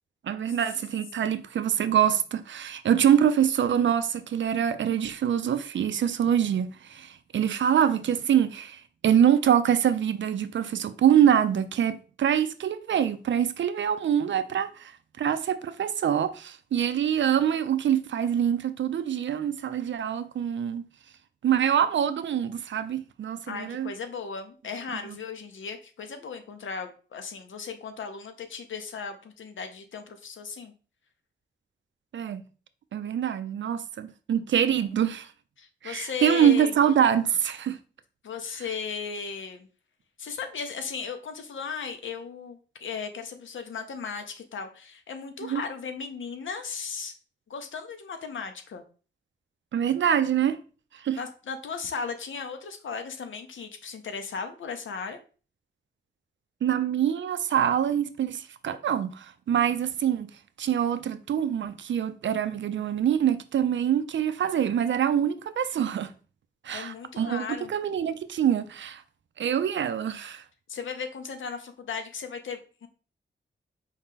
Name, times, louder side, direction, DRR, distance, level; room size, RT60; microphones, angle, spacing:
voice 1, 0.2-14.9 15.2-20.8 21.4-23.9 32.1-32.4 32.9-35.3 35.8-37.8 45.4-45.6 49.7-50.6 51.0-51.2 56.6-60.3 60.6-66.1 66.6-69.0 69.4-70.4, right 9 dB, 75° right, 0.4 m, -25 dB
voice 2, 23.5-30.7 35.6-36.7 38.2-39.7 40.2-47.1 47.5-48.8 51.2-55.2 66.7-67.7 70.7-72.9, left 5 dB, 85° left, 0.7 m, -36 dB
4.7 x 2.8 x 3.6 m
wide cardioid pair, 130°, 19 cm